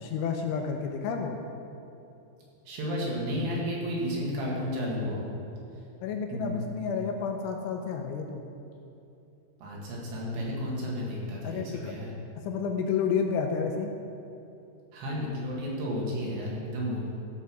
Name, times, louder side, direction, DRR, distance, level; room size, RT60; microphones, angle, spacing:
voice 1, 0.0-1.4 6.0-8.4 11.4-11.9 12.4-13.9, left 6 dB, 80° left, 3 dB, 2.9 m, -30 dB
voice 2, 2.7-5.4 6.3-6.6 9.6-12.1 14.9-17.1, equal, 65° right, -4 dB, 3.9 m, -32 dB
14.5 x 5.5 x 6.2 m, 2.8 s
omnidirectional pair, 5.8 m